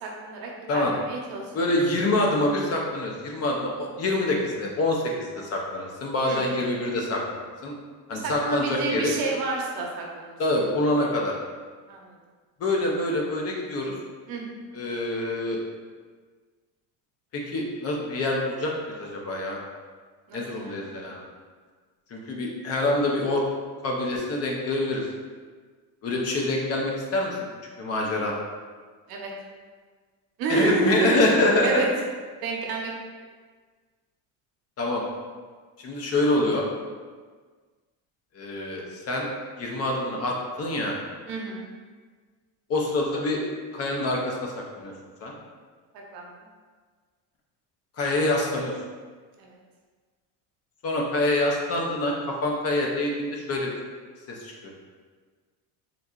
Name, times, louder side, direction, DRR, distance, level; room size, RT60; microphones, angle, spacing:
voice 1, 0.0-1.4 6.2-6.6 8.1-10.4 11.9-12.1 14.3-14.5 20.3-21.0 29.1-29.3 30.4-31.2 31.6-31.9 32.4-32.9 41.3-41.7 46.1-46.3 49.4-49.5, right 3 dB, 70° right, -1 dB, 0.8 m, -29 dB
voice 2, 1.5-7.7 8.1-9.1 10.4-11.3 12.6-13.9 14.7-15.6 17.3-19.6 20.3-21.2 22.1-23.4 23.8-25.1 26.0-27.4 27.8-28.3 30.5-31.9 34.8-35.0 35.8-36.6 38.3-39.3 39.6-40.9 42.7-43.4 43.7-44.9 45.2-45.3 48.0-48.7 50.8-52.1 52.4-53.7 54.4-54.7, left 2 dB, 40° left, -1 dB, 0.5 m, -26 dB
3.7 x 2.7 x 2.3 m, 1.5 s
cardioid pair, 140°, 39 cm